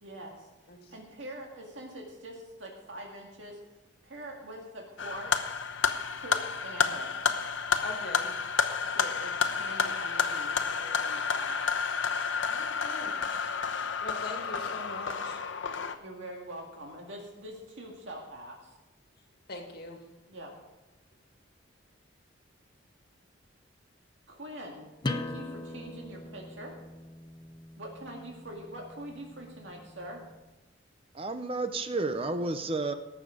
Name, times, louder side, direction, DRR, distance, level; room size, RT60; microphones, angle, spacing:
voice 1, 0.0-0.5 0.9-3.6 4.0-5.6 6.2-7.1 8.9-11.6 16.0-18.8 20.3-20.5 24.3-26.7 27.8-30.2, right 1 dB, 75° right, 0 dB, 2.0 m, -44 dB
sound 1, 5.0-15.9, left 5 dB, 75° left, 0.9 m, -30 dB
voice 2, 7.8-8.3 12.5-13.1 14.0-15.4 19.5-20.0, left 2 dB, 55° left, 2 dB, 2.2 m, -42 dB
sound 2, 25.0-30.4, left 2 dB, 25° left, 0.6 m, -41 dB
voice 3, 31.1-32.9, right 2 dB, 30° right, 9 dB, 0.6 m, -31 dB
18.5 x 7.2 x 5.0 m, 1.1 s
head